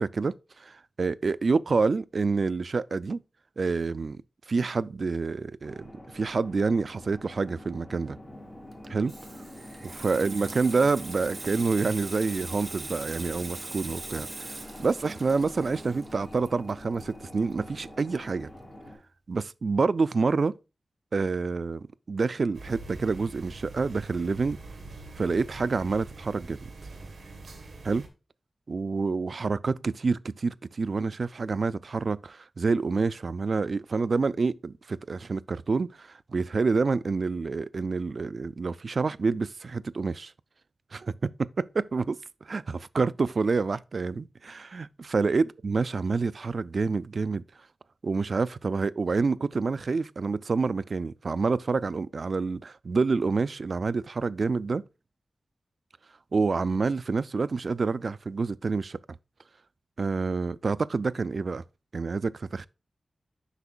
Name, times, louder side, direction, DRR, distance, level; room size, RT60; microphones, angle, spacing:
voice 1, 0.0-3.2 3.6-4.2 4.5-8.2 8.9-9.1 9.8-18.5 19.3-20.5 21.1-24.6 25.2-26.7 27.8-28.0 28.7-40.3 40.9-47.4 48.0-54.8 56.3-59.0 60.0-61.6 61.9-62.7, right 4 dB, 60° right, 0.3 m, -28 dB
sound 1, 5.6-19.0, left 1 dB, 30° left, 3.8 m, -45 dB
Water tap faucet / Sink (filling or washing), 8.7-18.0 18.3-18.6, right 3 dB, 40° right, 0.9 m, -42 dB
sound 2, 22.5-28.1, right 3 dB, 85° right, 1.6 m, -43 dB
8.1 x 5.8 x 2.3 m
wide cardioid pair, 90°, 0 cm